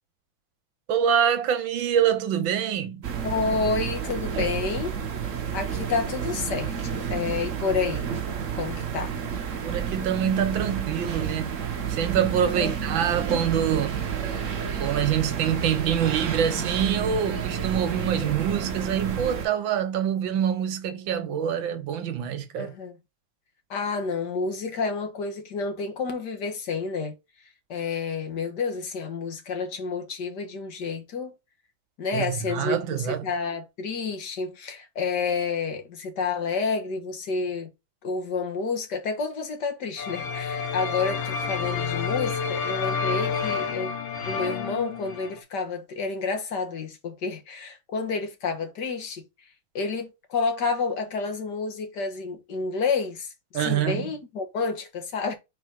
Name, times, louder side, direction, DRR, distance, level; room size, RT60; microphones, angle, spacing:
voice 1, 0.9-3.1 9.6-11.6 11.9-14.0 14.8-22.7 32.1-33.3 53.5-54.1, right 9 dB, 80° right, 1.6 m, -25 dB
sound 1, 3.0-19.5, right 7 dB, 50° right, 1.0 m, -30 dB
voice 2, 3.2-5.0 5.5-8.1 8.6-9.2 12.5-12.7 22.6-23.0 23.7-27.1 27.7-31.4 32.0-32.8 33.0-37.7 38.0-43.9 44.3-49.2 49.8-55.3, left 4 dB, 60° left, 1.9 m, -29 dB
sound 2, 40.0-45.4, left 5 dB, 90° left, 1.6 m, -29 dB
4.6 x 4.1 x 5.1 m
omnidirectional pair, 2.1 m